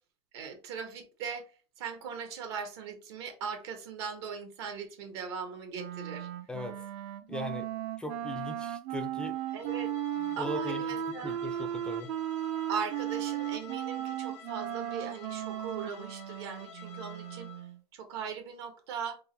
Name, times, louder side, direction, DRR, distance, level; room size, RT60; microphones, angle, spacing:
voice 1, 0.3-1.4 1.8-6.3 9.5-9.9 10.4-11.4 12.7-17.5 17.9-19.2, right 6 dB, 75° right, 1.1 m, -39 dB
Wind instrument woodwind instrument, 5.7-17.8, right 11 dB, 55° right, 0.5 m, -36 dB
voice 2, 6.5-6.8 7.3-7.7 8.0-9.4 10.2-10.8 11.2-12.1, left 2 dB, 5° left, 0.4 m, -39 dB
Bowed string instrument, 9.3-17.7, left 8 dB, 80° left, 1.1 m, -51 dB
3.7 x 2.1 x 3.8 m
supercardioid pair, 135°, 14 cm